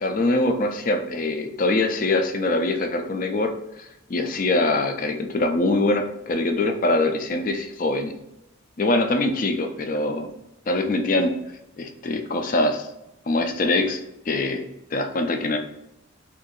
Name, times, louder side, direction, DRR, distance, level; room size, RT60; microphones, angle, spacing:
voice 1, 0.0-8.1 8.8-10.3 10.7-11.3 11.8-12.9 13.3-14.0 14.3-14.6 14.9-15.6, left 2 dB, 40° left, 5 dB, 0.4 m, -23 dB
2.7 x 2.5 x 3.8 m, 0.86 s
head